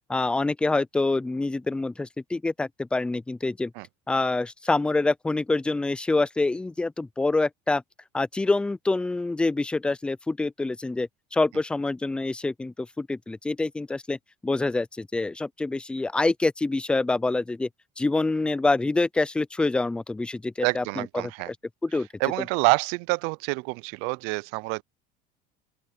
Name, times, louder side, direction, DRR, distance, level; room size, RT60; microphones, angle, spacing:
voice 1, 0.1-3.7 4.1-7.8 8.1-14.2 14.4-17.7 18.0-21.3 21.8-22.1, left 3 dB, 5° left, 0.3 m, -26 dB
voice 2, 20.6-21.5 22.2-24.8, right 30 dB, 80° right, 0.4 m, -27 dB
open air
cardioid pair, 150°, 19 cm